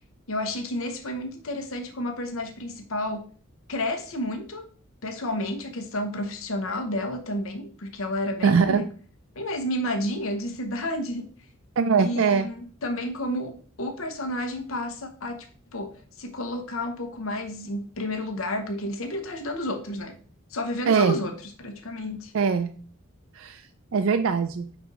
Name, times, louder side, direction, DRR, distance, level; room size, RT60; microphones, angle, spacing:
voice 1, 0.3-3.3 3.7-4.7 5.0-8.9 9.3-11.2 12.0-20.2 20.5-22.3, left 1 dB, 75° left, 5 dB, 0.9 m, -31 dB
voice 2, 8.4-8.8 11.8-12.5 20.9-21.2 22.3-22.7 23.3-23.7 23.9-24.7, right 5 dB, 70° right, 9 dB, 0.4 m, -22 dB
5.1 x 4.1 x 4.7 m, 0.42 s
head